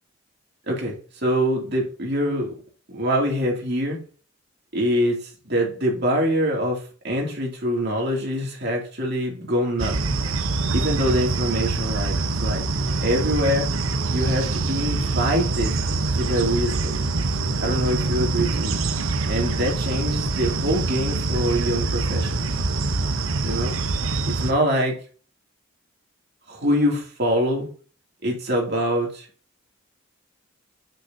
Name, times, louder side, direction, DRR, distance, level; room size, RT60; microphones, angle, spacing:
voice 1, 0.7-2.5 2.9-4.0 4.7-10.0 10.7-12.7 13.0-13.7 14.1-17.0 17.6-18.8 19.3-22.5 23.4-23.8 24.2-25.0 26.5-27.7 28.2-29.3, equal, 55° right, -1 dB, 2.5 m, -24 dB
sound 1, 9.8-24.5, right 3 dB, 80° right, 0.8 m, -25 dB
8.0 x 6.5 x 2.7 m, 0.39 s
head